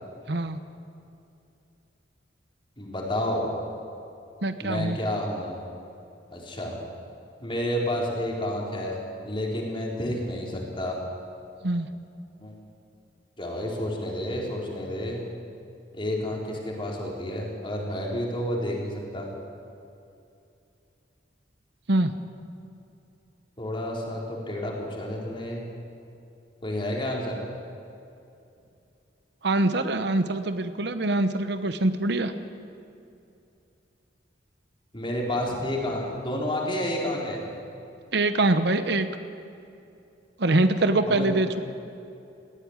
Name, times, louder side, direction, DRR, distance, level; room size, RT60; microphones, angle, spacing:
voice 1, 0.3-0.6 4.4-5.0 11.6-11.9 21.9-22.1 29.4-32.3 38.1-39.1 40.4-41.6, right 2 dB, 65° right, 10 dB, 1.0 m, -24 dB
voice 2, 2.8-3.5 4.6-5.6 6.3-6.8 7.4-11.0 12.4-12.5 13.4-15.2 15.9-19.3 23.6-25.6 26.6-27.4 34.9-37.4 41.1-41.3, left 1 dB, 30° left, -2 dB, 4.1 m, -30 dB
18.5 x 15.0 x 9.6 m, 2.6 s
head